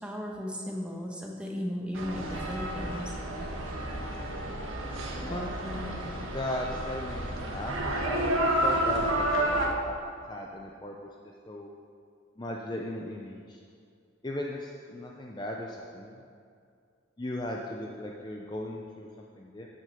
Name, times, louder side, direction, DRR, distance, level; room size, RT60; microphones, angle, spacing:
voice 1, 0.0-3.1, equal, 5° right, -1 dB, 1.3 m, -35 dB
sound 1, 1.9-9.7, right 1 dB, 90° right, 1.5 m, -30 dB
voice 2, 5.2-9.9 10.3-11.0 11.2-11.7 12.4-13.6 14.2-16.2 17.2-19.7, left 1 dB, 20° left, -1 dB, 0.6 m, -37 dB
11.5 x 6.5 x 6.9 m, 2.3 s
head